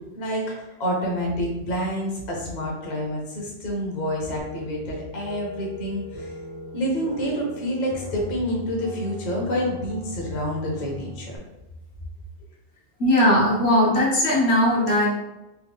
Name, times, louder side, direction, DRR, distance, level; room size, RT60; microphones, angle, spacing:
voice 1, 0.1-6.3 6.7-11.4, equal, 45° left, -2 dB, 0.8 m, -28 dB
sound 1, 4.4-11.4, equal, 40° right, 0.4 m, -39 dB
voice 2, 13.0-15.1, left 1 dB, 70° left, -4 dB, 1.2 m, -19 dB
3.3 x 2.2 x 3.4 m, 0.97 s
omnidirectional pair, 1.1 m